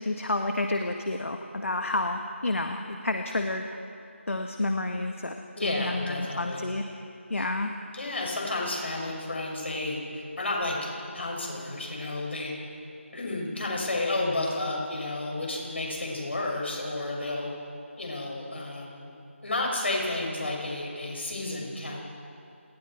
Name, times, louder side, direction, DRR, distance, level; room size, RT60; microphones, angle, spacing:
voice 1, 0.0-3.7 4.3-5.3 5.6-6.8 7.3-7.7, left 2 dB, 75° left, 5 dB, 1.5 m, -30 dB
voice 2, 5.6-6.6 7.4-7.5 7.9-12.5 13.1-17.5 18.0-19.1 19.4-22.0, left 2 dB, 60° left, -1 dB, 6.6 m, -31 dB
28.5 x 20.0 x 4.6 m, 2.8 s
figure-of-eight pair, 170°, 7 cm